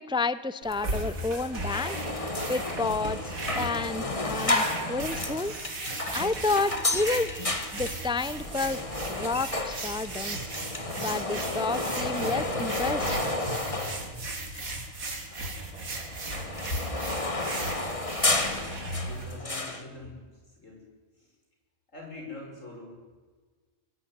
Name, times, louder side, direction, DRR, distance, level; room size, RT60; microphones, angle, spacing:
voice 1, 0.0-2.0 2.5-3.3 3.6-5.6 6.1-7.3 7.7-8.8 9.1-10.4 11.0-13.2, left 3 dB, 5° right, 15 dB, 0.4 m, -30 dB
sound 1, 0.6-19.2, right 2 dB, 85° right, 3.2 m, -37 dB
sound 2, 0.9-1.0 1.3-14.8 15.1-19.8, left 2 dB, 25° left, 1.7 m, -32 dB
voice 2, 16.3-16.9 17.2-17.6 18.1-20.2 20.6-20.8 21.2-21.3 21.9-23.0, left 2 dB, 65° left, 0 dB, 6.7 m, -41 dB
23.0 x 15.5 x 9.5 m, 1.4 s
omnidirectional pair, 1.4 m